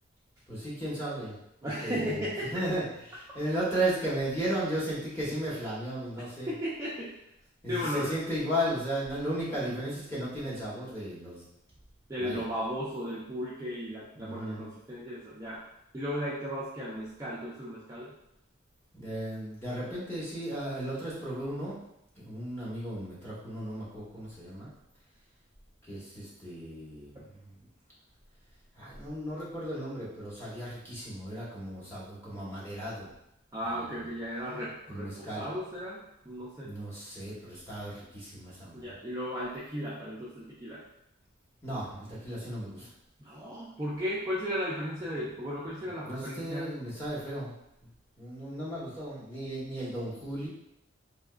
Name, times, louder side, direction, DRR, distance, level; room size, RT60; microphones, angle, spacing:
voice 1, 0.5-1.3 1.6-6.5 7.6-11.4 12.2-12.4 14.1-14.7 18.9-21.8 22.1-24.7 25.9-27.6 28.8-33.1 33.6-34.1 34.9-35.4 36.5-39.0 41.6-42.9 46.0-47.5 48.2-50.5, right 1 dB, 10° left, -8 dB, 1.0 m, -35 dB
voice 2, 1.6-2.5 6.5-7.1 7.7-8.1 9.6-9.8 12.1-15.6 15.9-18.1 27.1-27.2 33.5-36.7 38.7-40.8 43.2-46.7, equal, 15° right, -8 dB, 0.4 m, -35 dB
3.4 x 2.8 x 2.4 m, 0.82 s
head